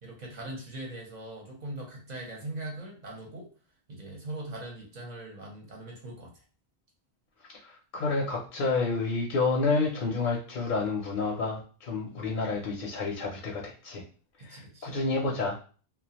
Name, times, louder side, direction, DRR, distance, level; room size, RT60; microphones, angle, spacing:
voice 1, 0.0-3.5 3.9-6.3 14.4-14.9, right 1 dB, 45° right, -1 dB, 0.8 m, -41 dB
voice 2, 7.6-14.0 14.5-15.6, left 3 dB, 55° left, -1 dB, 0.6 m, -29 dB
2.3 x 2.1 x 2.8 m, 0.38 s
omnidirectional pair, 1.1 m